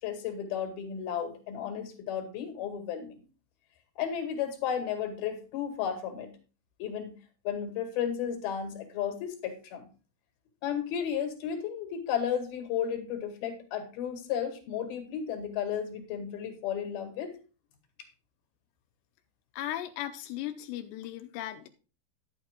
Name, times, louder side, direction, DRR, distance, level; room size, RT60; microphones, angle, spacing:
voice 1, 0.0-3.2 4.0-6.3 6.8-7.1 7.4-9.8 10.6-17.3, left 8 dB, 60° left, 6 dB, 3.4 m, -33 dB
voice 2, 19.5-21.7, left 13 dB, 85° left, 7 dB, 2.6 m, -37 dB
11.0 x 8.9 x 3.7 m, 0.34 s
omnidirectional pair, 5.7 m